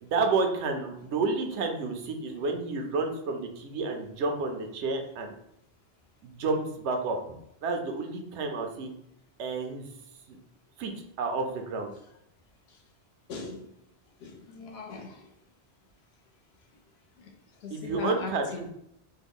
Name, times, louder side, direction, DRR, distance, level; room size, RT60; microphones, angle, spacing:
voice 1, 0.0-5.3 6.2-7.4 7.6-8.9 9.4-9.9 10.3-10.4 10.8-11.9 17.7-18.7, right 3 dB, 85° right, 4 dB, 0.9 m, -30 dB
voice 2, 13.3-13.7 14.2-15.3 17.6-18.7, left 4 dB, 70° left, 2 dB, 0.8 m, -39 dB
3.3 x 2.1 x 3.4 m, 0.75 s
omnidirectional pair, 1.1 m